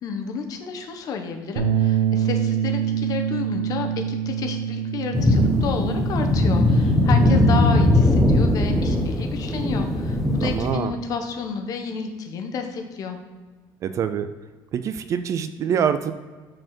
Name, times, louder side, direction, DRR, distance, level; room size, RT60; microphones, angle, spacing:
voice 1, 0.0-13.2, left 5 dB, 40° left, 5 dB, 1.0 m, -31 dB
Bass guitar, 1.6-7.8, right 9 dB, 90° right, 1.1 m, -26 dB
sound 1, 5.1-10.7, left 1 dB, ahead, 0.8 m, -19 dB
voice 2, 10.4-10.9 13.8-14.3 14.7-16.1, right 8 dB, 35° right, 11 dB, 0.3 m, -25 dB
6.3 x 4.4 x 5.9 m, 1.4 s
cardioid pair, 165°, 9 cm